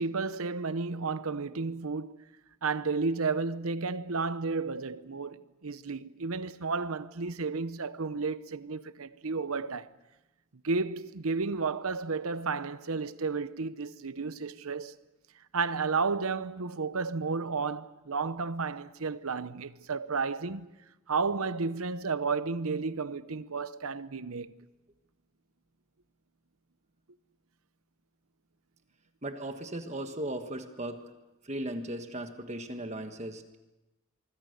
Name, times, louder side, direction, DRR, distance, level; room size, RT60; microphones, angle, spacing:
voice 1, 0.0-2.2 2.6-9.9 10.6-14.9 15.5-20.7 21.1-24.5, right 4 dB, 75° right, 0.9 m, -32 dB
voice 2, 29.2-31.0 31.4-33.6, right 1 dB, 30° right, 1.5 m, -37 dB
25.0 x 24.5 x 6.7 m
head